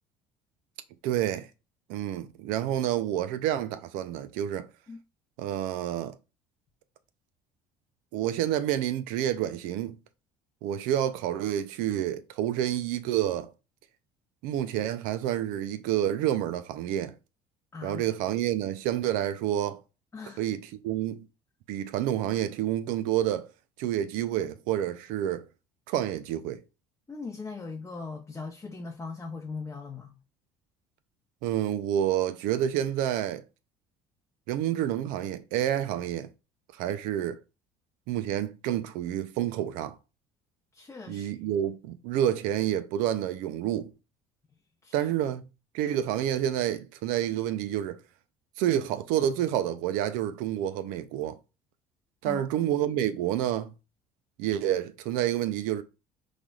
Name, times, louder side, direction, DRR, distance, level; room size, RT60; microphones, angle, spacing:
voice 1, 1.0-1.5 1.9-4.7 5.4-6.2 8.1-10.0 10.6-13.5 14.4-17.1 17.8-19.8 20.4-21.3 21.7-23.5 23.8-25.4 25.9-26.6 31.4-33.4 34.5-36.3 36.8-37.4 38.1-39.9 41.1-43.9 44.9-45.5 45.7-48.0 48.6-51.4 52.2-53.7 54.4-55.8, right 11 dB, 80° right, 0.5 m, -29 dB
voice 2, 17.7-18.0 20.1-20.4 27.1-30.2 40.7-41.5 44.8-45.1 52.2-52.4, left 4 dB, 20° left, 0.7 m, -40 dB
4.0 x 3.2 x 2.3 m
supercardioid pair, 90°, 14 cm